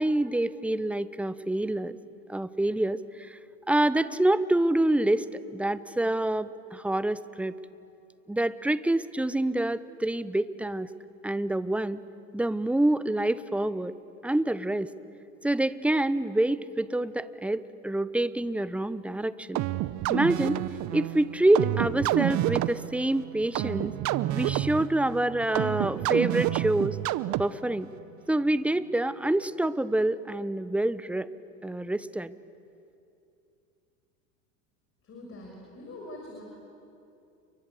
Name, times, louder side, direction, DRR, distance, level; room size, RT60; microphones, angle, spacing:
voice 1, 0.0-2.0 2.3-3.4 3.7-7.5 8.3-10.9 11.2-12.0 12.3-13.9 14.2-14.9 15.4-19.6 20.1-20.6 20.9-23.9 24.3-27.0 27.4-27.9 28.3-31.3 31.6-32.3, right 1 dB, 5° right, 15 dB, 0.8 m, -27 dB
sound 1, 19.6-27.8, right 15 dB, 45° right, 0.9 m, -29 dB
voice 2, 35.0-36.4, left 1 dB, 35° left, 0 dB, 6.5 m, -43 dB
30.0 x 23.0 x 8.1 m, 2.6 s
hypercardioid pair, 95°, 40 cm